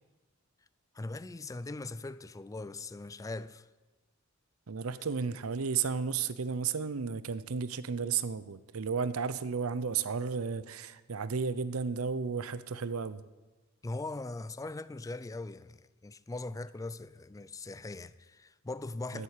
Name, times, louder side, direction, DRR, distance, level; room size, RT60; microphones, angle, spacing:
voice 1, 0.9-3.7 13.8-19.2, left 2 dB, 15° left, 0.4 m, -40 dB
voice 2, 4.7-13.2 19.1-19.2, right 5 dB, 85° right, 0.6 m, -33 dB
13.0 x 7.5 x 8.3 m
head